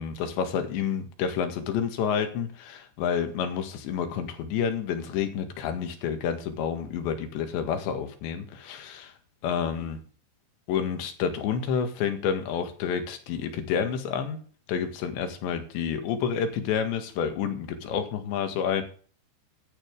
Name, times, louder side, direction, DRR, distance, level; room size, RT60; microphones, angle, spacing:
voice 1, 0.0-9.1 9.4-10.0 10.7-14.4 14.7-18.8, left 7 dB, 75° left, 6 dB, 4.0 m, -29 dB
14.5 x 12.0 x 3.6 m, 0.43 s
omnidirectional pair, 5.3 m